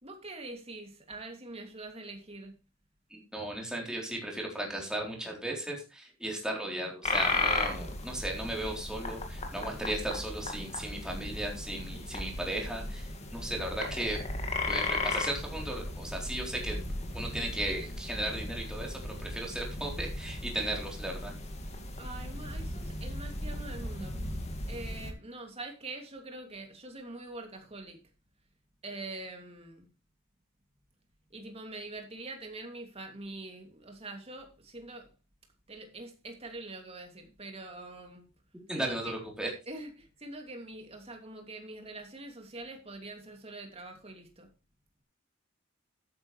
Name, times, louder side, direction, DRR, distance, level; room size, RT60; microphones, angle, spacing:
voice 1, 0.0-2.6 22.0-24.2 24.7-28.0 28.8-29.9 31.3-35.1 35.7-38.3 38.7-38.9 39.7-44.5, right 2 dB, 30° right, 2.7 m, -44 dB
voice 2, 3.1-14.2 14.7-16.8 17.1-21.4 38.7-39.5, right 1 dB, 5° right, 3.8 m, -36 dB
sound 1, 7.0-25.1, left 2 dB, 35° left, 2.3 m, -36 dB
12.0 x 9.8 x 3.3 m
head